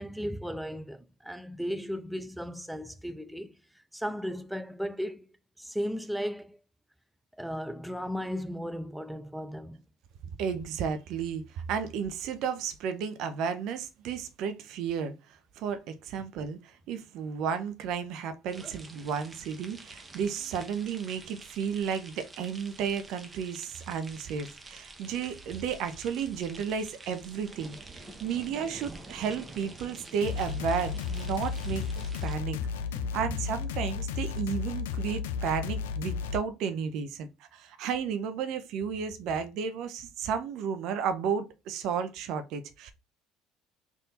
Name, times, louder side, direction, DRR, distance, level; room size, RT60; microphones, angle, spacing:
voice 1, 0.0-3.6 3.9-5.3 5.6-6.6 7.4-9.8 31.7-31.8 32.9-33.1, equal, 5° right, 0.4 m, -35 dB
voice 2, 10.4-32.6 33.1-42.9, right 7 dB, 60° right, 0.7 m, -33 dB
sound 1, 18.5-32.4, right 2 dB, 20° right, 0.8 m, -48 dB
sound 2, 30.2-36.4, left 6 dB, 75° left, 0.3 m, -33 dB
3.5 x 2.6 x 4.1 m
hypercardioid pair, 60°, 0 cm